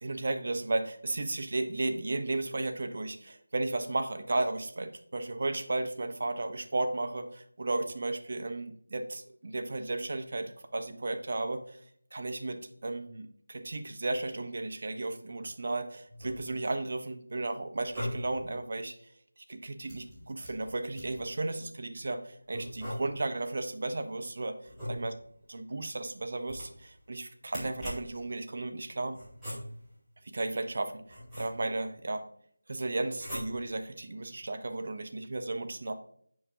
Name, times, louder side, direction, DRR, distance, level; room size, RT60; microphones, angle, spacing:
voice 1, 0.0-11.8 12.1-18.9 19.4-24.6 24.9-25.1 25.5-29.2 30.2-32.2 32.7-35.9, right 2 dB, 45° right, 8 dB, 0.8 m, -34 dB
sound 1, 16.1-16.8 17.7-18.5 19.9-21.3 22.5-23.4 24.6-25.4 26.4-27.0 27.5-28.3 29.1-30.0 30.7-31.9 33.1-33.8, equal, 5° right, 2.5 m, -41 dB
9.9 x 4.7 x 2.8 m, 0.63 s
figure-of-eight pair, 170°, 0 cm